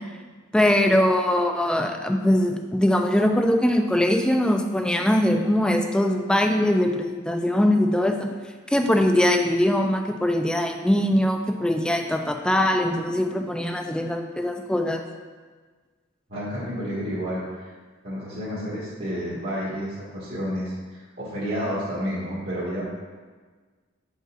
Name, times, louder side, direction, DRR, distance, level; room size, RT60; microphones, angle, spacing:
voice 1, 0.5-8.3 8.7-15.0, left 1 dB, 5° left, 4 dB, 0.4 m, -22 dB
voice 2, 16.3-17.7 18.0-22.8, equal, 50° right, -9 dB, 1.7 m, -30 dB
7.4 x 5.3 x 2.5 m, 1.4 s
head